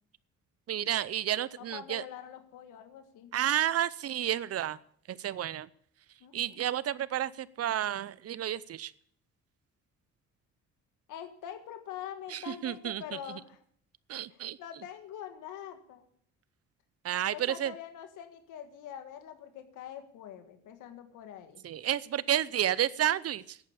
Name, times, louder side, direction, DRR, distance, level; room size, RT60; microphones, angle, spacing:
voice 1, 0.7-2.0 3.3-4.8 5.1-5.7 6.3-8.9 12.3-13.0 13.3-13.4 14.1-14.6 17.0-17.7 21.6-23.6, right 11 dB, 50° right, 0.6 m, -31 dB
voice 2, 1.6-3.3 6.2-6.6 11.1-13.6 14.3-16.1 17.3-21.6, left 9 dB, 90° left, 1.7 m, -44 dB
10.5 x 8.8 x 8.6 m
cardioid pair, 90°, 30 cm